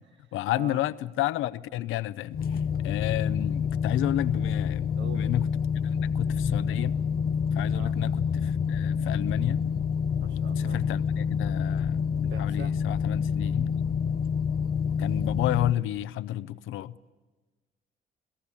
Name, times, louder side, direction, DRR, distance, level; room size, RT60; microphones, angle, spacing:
voice 1, 0.3-2.4 2.8-5.5 5.8-7.0 7.5-9.6 10.6-13.7 15.0-17.0, left 14 dB, 90° left, 0.7 m, -31 dB
sound 1, 2.3-15.7, left 6 dB, 45° left, 0.8 m, -27 dB
voice 2, 5.0-5.3 7.7-7.9 10.2-10.8 12.3-12.7, right 5 dB, 65° right, 1.6 m, -42 dB
27.0 x 17.5 x 8.5 m
cardioid pair, 90°, 20 cm